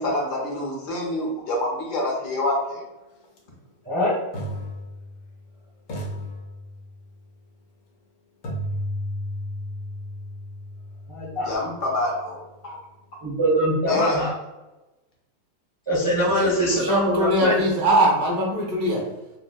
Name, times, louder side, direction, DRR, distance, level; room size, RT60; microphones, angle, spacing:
voice 1, 0.0-2.8 11.4-12.8 13.9-14.3, left 1 dB, 65° left, -2 dB, 1.2 m, -26 dB
sound 1, 3.2-3.4 4.3-5.5 5.9-7.1 8.4-12.4, equal, 85° left, 1.6 m, -34 dB
voice 2, 11.1-11.5 13.2-14.3 15.9-17.6, equal, 40° right, -6 dB, 0.4 m, -23 dB
voice 3, 16.4-19.2, right 1 dB, 70° right, -1 dB, 1.5 m, -22 dB
4.2 x 2.0 x 2.2 m, 1.0 s
omnidirectional pair, 2.0 m